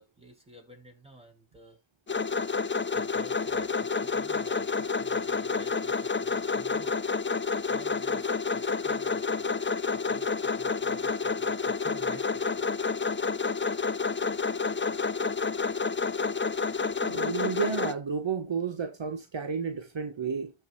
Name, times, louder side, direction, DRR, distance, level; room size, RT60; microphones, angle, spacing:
voice 1, 0.0-1.8 2.9-7.0 7.7-9.5 9.9-12.6, right 1 dB, 10° right, 4.8 m, -51 dB
sound 1, 2.1-17.9, left 4 dB, 25° left, 0.6 m, -29 dB
voice 2, 17.0-20.5, right 6 dB, 60° right, 1.4 m, -31 dB
14.0 x 5.3 x 2.3 m
cardioid pair, 45°, 50 cm